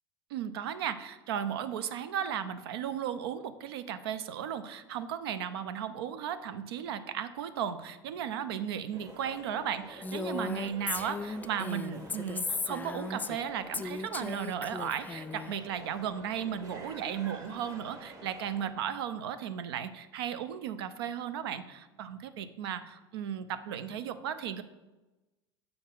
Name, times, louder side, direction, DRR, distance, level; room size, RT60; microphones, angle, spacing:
voice 1, 0.3-24.6, right 9 dB, 75° right, 12 dB, 0.5 m, -35 dB
sound 1, 8.9-18.7, right 2 dB, 25° right, 1.2 m, -49 dB
Female speech woman speaking, 10.0-13.4 13.7-15.5, left 3 dB, 15° left, 0.3 m, -36 dB
6.9 x 5.3 x 3.8 m, 1.1 s
hypercardioid pair, 80°, 13 cm